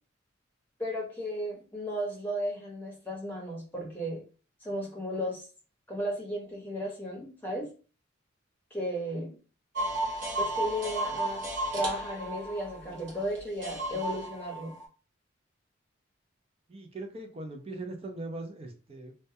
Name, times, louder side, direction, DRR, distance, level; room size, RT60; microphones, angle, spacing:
voice 1, 0.8-4.2 4.6-5.5 5.9-7.7 8.7-9.4 10.4-11.4 11.7-14.7, equal, 10° left, -3 dB, 0.8 m, -34 dB
sound 1, 9.8-14.8, right 2 dB, 60° right, 0.8 m, -33 dB
voice 2, 16.7-19.1, right 2 dB, 30° right, 4 dB, 0.4 m, -40 dB
2.2 x 2.1 x 2.7 m, 0.37 s
head